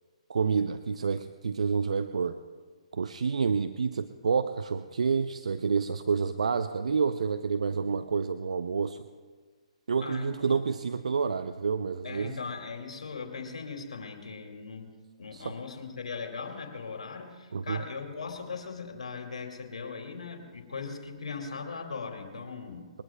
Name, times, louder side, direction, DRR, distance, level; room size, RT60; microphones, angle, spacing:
voice 1, 0.3-2.4 2.9-9.1 9.9-12.4 15.3-15.6 17.5-17.8, right 5 dB, 70° right, 11 dB, 0.5 m, -29 dB
voice 2, 10.0-10.6 12.0-14.9 15.2-22.9, left 5 dB, 75° left, 3 dB, 2.4 m, -39 dB
21.5 x 20.0 x 2.2 m, 1.5 s
figure-of-eight pair, 130°, 4 cm